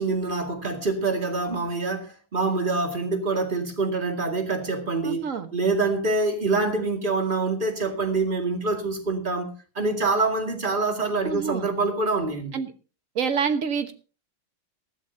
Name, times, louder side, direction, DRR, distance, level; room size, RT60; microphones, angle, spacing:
voice 1, 0.0-12.5, right 3 dB, 25° right, 2.3 m, -26 dB
voice 2, 5.0-5.5 11.2-11.7 12.5-12.7 13.1-13.9, right 6 dB, 45° right, 1.4 m, -27 dB
19.0 x 14.0 x 2.8 m
omnidirectional pair, 2.3 m